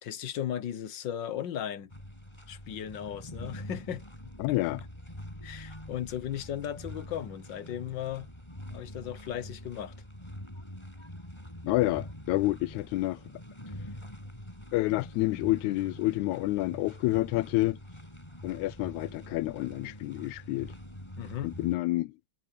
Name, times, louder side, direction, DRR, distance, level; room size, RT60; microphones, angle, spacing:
voice 1, 0.0-1.9 2.5-4.0 5.4-8.3 8.7-9.9 21.2-21.5, left 10 dB, 60° left, 1.2 m, -36 dB
sound 1, 1.9-21.8, left 1 dB, 10° left, 6.8 m, -45 dB
voice 2, 4.4-4.8 11.6-13.2 14.7-17.8 18.4-20.7 21.4-22.1, left 19 dB, 80° left, 1.9 m, -28 dB
omnidirectional pair, 3.4 m